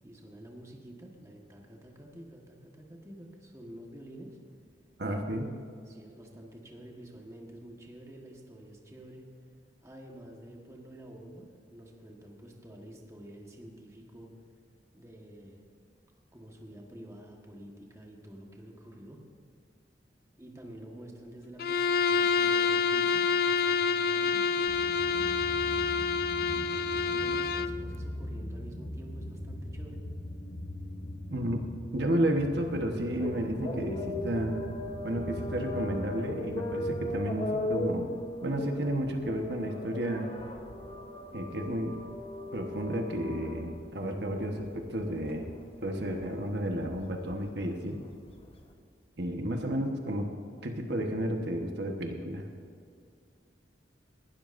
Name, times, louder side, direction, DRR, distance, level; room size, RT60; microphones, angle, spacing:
voice 1, 0.0-4.4 5.8-9.3 9.8-14.3 14.9-15.6 16.3-19.2 20.4-25.9 26.2-30.1, right 1 dB, 15° right, 0 dB, 1.3 m, -49 dB
voice 2, 5.0-5.5 31.3-31.6 31.9-34.6 35.0-38.1 38.4-40.3 41.3-41.9 42.5-45.5 45.8-48.0 49.2-50.3 50.6-52.4, right 1 dB, 65° right, 3 dB, 1.2 m, -32 dB
Bowed string instrument, 21.6-27.8, left 5 dB, 55° left, 0.3 m, -27 dB
sound 1, 24.7-37.3, left 1 dB, 70° left, 1.2 m, -41 dB
sound 2, 32.6-48.7, left 1 dB, 30° left, 1.0 m, -39 dB
19.0 x 12.5 x 2.6 m, 2.3 s
head